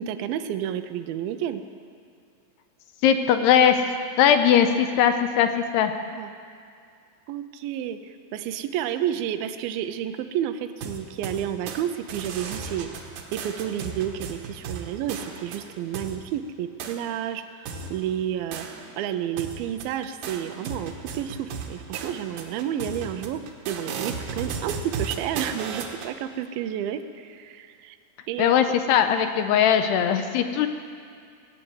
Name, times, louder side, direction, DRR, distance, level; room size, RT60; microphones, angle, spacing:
voice 1, 0.0-1.6 6.1-6.3 7.3-12.9 13.3-18.7 19.0-23.4 23.7-28.0 28.3-28.6, right 10 dB, 90° right, 8 dB, 2.1 m, -30 dB
voice 2, 3.0-3.8 4.2-5.9 28.4-30.7, left 9 dB, 80° left, 8 dB, 2.6 m, -20 dB
sound 1, 10.8-11.8 12.1-16.2 16.8-17.0 17.7-19.1 19.4-26.1, right 5 dB, 70° right, 2.2 m, -35 dB
18.5 x 9.2 x 7.9 m, 2.3 s
omnidirectional pair, 5.1 m